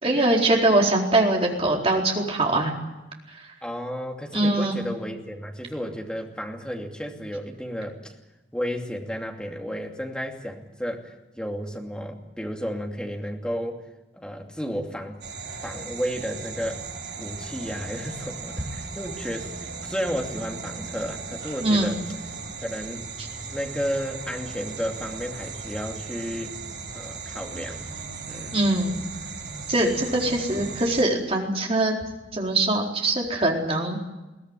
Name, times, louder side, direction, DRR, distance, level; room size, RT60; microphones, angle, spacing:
voice 1, 0.0-2.7 4.3-4.8 21.6-22.0 28.5-28.9 29.7-31.9 32.3-34.0, right 2 dB, 30° right, 0 dB, 4.3 m, -22 dB
voice 2, 3.6-8.1 8.5-13.8 14.1-15.2 15.6-16.8 17.2-22.0 22.6-23.1 23.5-26.6 26.9-27.9 28.3-28.7 30.5-30.6, equal, 5° left, 1 dB, 2.6 m, -32 dB
sound 1, 15.2-31.0, right 4 dB, 60° right, 4.3 m, -37 dB
22.0 x 17.0 x 9.9 m, 1.0 s
head